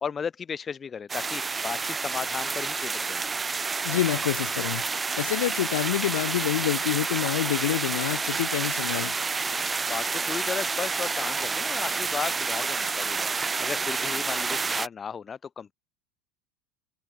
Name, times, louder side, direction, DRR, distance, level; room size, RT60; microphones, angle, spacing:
voice 1, 0.0-3.2 9.8-13.3 13.6-15.7, left 6 dB, 25° left, 1.6 m, -35 dB
sound 1, 1.1-14.9, right 4 dB, 20° right, 1.2 m, -29 dB
voice 2, 3.8-4.8 5.2-9.1, left 14 dB, 85° left, 1.0 m, -27 dB
supercardioid pair, 105°, 0 cm